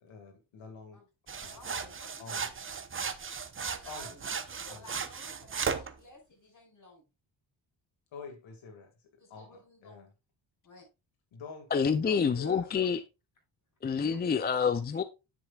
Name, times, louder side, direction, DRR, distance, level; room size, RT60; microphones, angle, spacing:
voice 1, 0.0-1.0 1.4-1.8 2.2-2.5 3.8-4.2 4.7-4.8 8.1-8.9 9.3-10.1 11.3-12.8 14.3-14.5, left 4 dB, 90° left, 2.1 m, -47 dB
sound 1, 1.3-5.9, right 6 dB, 25° right, 0.8 m, -36 dB
voice 2, 1.5-2.8 3.8-7.0 9.2-10.1 10.6-10.9 12.5-12.9 14.1-14.2, left 2 dB, 40° left, 5.7 m, -55 dB
voice 3, 11.7-13.0 13.8-15.0, left 6 dB, 25° left, 0.4 m, -27 dB
9.7 x 7.9 x 2.4 m
cardioid pair, 125°, 46 cm